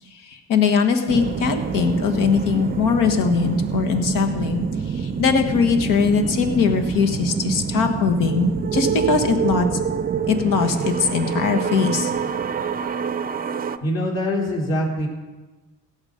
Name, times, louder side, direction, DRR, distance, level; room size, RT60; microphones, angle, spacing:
voice 1, 0.2-4.6 4.9-9.7 10.3-12.1, left 5 dB, 80° left, 5 dB, 1.5 m, -21 dB
sound 1, 1.1-13.8, right 6 dB, 30° right, 0.5 m, -26 dB
voice 2, 13.8-15.1, equal, 50° left, -2 dB, 3.7 m, -23 dB
17.0 x 7.3 x 5.1 m, 1.2 s
cardioid pair, 110°, 32 cm